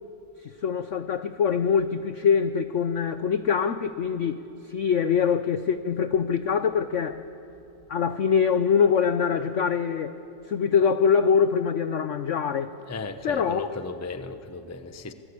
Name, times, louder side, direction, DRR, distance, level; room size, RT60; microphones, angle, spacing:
voice 1, 0.6-4.4 4.7-7.2 7.9-10.2 10.5-12.7 13.2-13.7, left 6 dB, 80° left, 11 dB, 0.6 m, -23 dB
voice 2, 12.9-15.1, left 3 dB, 20° left, 9 dB, 0.4 m, -35 dB
28.0 x 19.5 x 8.5 m, 2.8 s
omnidirectional pair, 2.2 m